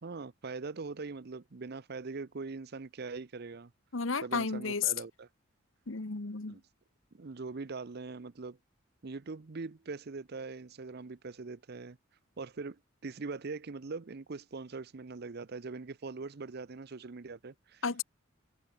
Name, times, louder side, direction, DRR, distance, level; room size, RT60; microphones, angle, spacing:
voice 1, 0.0-3.7 4.2-5.3 6.5-6.6 7.1-8.6 9.0-12.0 12.4-17.8, right 4 dB, 55° right, 0.7 m, -42 dB
voice 2, 3.9-4.9 5.9-6.6 17.8-18.0, left 5 dB, 75° left, 1.3 m, -32 dB
head